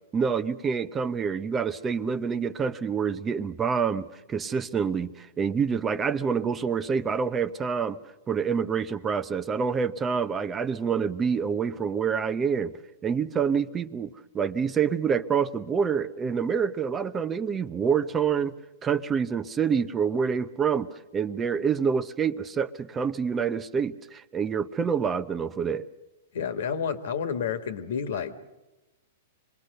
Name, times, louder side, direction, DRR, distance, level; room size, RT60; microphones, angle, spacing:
voice 1, 0.1-8.0 8.3-12.7 13.0-18.5 18.8-20.9 21.1-25.9, right 6 dB, 20° right, 13 dB, 0.7 m, -27 dB
voice 2, 26.3-28.3, left 7 dB, 75° left, 10 dB, 1.7 m, -30 dB
26.0 x 20.5 x 6.6 m, 1.0 s
hypercardioid pair, 140°, 0 cm